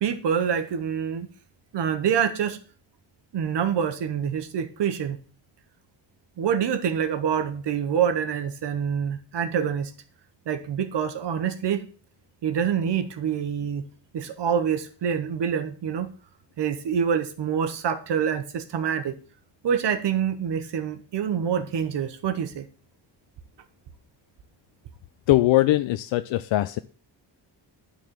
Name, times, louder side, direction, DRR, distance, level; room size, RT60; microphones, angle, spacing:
voice 1, 0.0-1.3 1.7-2.6 3.3-5.2 6.4-9.9 10.5-11.8 12.4-13.8 14.1-16.1 16.6-19.2 19.6-22.7, right 8 dB, 65° right, 9 dB, 1.0 m, -26 dB
voice 2, 25.3-26.8, left 16 dB, 85° left, 13 dB, 0.5 m, -21 dB
9.3 x 4.2 x 7.4 m, 0.41 s
wide cardioid pair, 160°, 44 cm